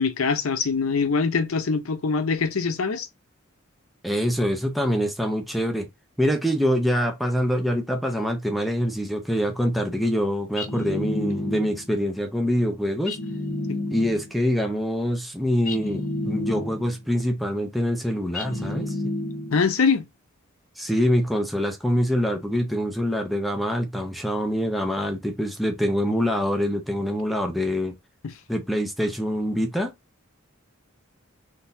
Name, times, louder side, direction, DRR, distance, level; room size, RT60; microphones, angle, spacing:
voice 1, 0.0-3.1 13.7-13.8 19.5-20.1, left 5 dB, 90° left, 0.7 m, -23 dB
voice 2, 4.0-5.9 6.2-13.2 13.9-19.1 20.8-27.9 28.5-29.9, equal, ahead, 0.6 m, -25 dB
sound 1, 10.6-11.9 13.1-14.4 15.7-17.0 18.3-19.7, left 2 dB, 40° left, 0.7 m, -30 dB
3.8 x 2.7 x 2.6 m
head